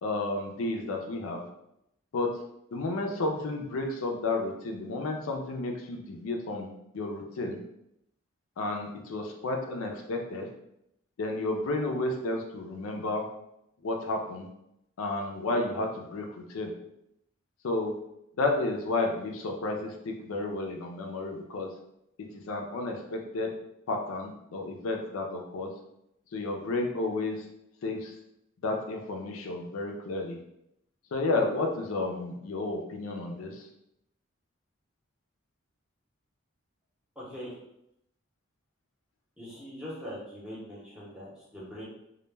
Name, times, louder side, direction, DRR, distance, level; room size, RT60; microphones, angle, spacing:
voice 1, 0.0-1.4 2.1-2.3 2.7-6.7 6.9-7.6 8.6-10.5 11.2-13.2 13.8-14.5 15.0-16.7 17.6-17.9 18.4-21.7 22.3-23.5 23.9-25.7 26.3-27.4 27.8-28.1 28.6-30.4 31.1-33.7, left 2 dB, 80° left, 2 dB, 0.4 m, -31 dB
voice 2, 37.2-37.5 39.4-41.8, equal, 5° right, -7 dB, 0.6 m, -42 dB
2.2 x 2.1 x 3.2 m, 0.80 s
head